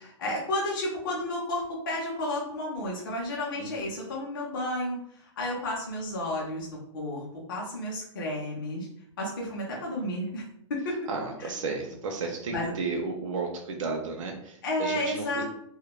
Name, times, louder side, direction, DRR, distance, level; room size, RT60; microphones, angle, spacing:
voice 1, 0.0-5.0 5.4-6.7 6.9-7.2 7.5-8.9 9.2-10.4 10.7-10.9 11.4-11.5 12.5-12.7 14.6-15.4, left 1 dB, 40° left, -3 dB, 0.5 m, -31 dB
voice 2, 3.6-3.9 9.7-10.1 11.1-15.4, right 4 dB, 80° right, 1 dB, 0.4 m, -34 dB
2.1 x 2.1 x 2.9 m, 0.73 s
hypercardioid pair, 180°, 16 cm